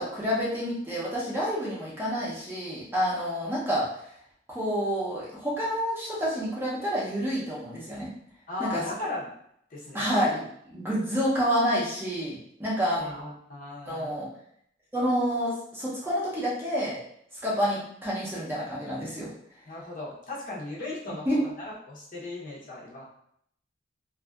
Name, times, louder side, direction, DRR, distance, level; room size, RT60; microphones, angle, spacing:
voice 1, 0.0-3.8 4.5-8.1 8.6-8.8 9.9-13.0 13.9-14.3 14.9-17.0 17.4-19.3 21.3-21.4, equal, 10° right, -6 dB, 0.6 m, -28 dB
voice 2, 8.5-9.2 9.7-10.0 13.0-14.1 19.7-23.0, left 2 dB, 45° left, -5 dB, 0.7 m, -37 dB
2.6 x 2.5 x 2.3 m, 0.69 s
head